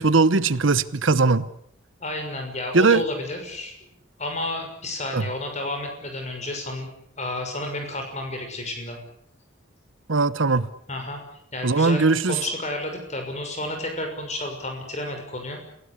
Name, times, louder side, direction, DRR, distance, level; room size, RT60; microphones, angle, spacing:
voice 1, 0.0-1.5 2.7-3.0 5.1-5.2 10.1-10.7 11.6-12.4, right 3 dB, 75° right, 1.0 m, -19 dB
voice 2, 2.0-3.7 4.2-6.9 7.1-9.0 10.9-11.2 11.5-15.6, left 1 dB, 35° left, 6.3 m, -31 dB
28.5 x 17.5 x 8.3 m
head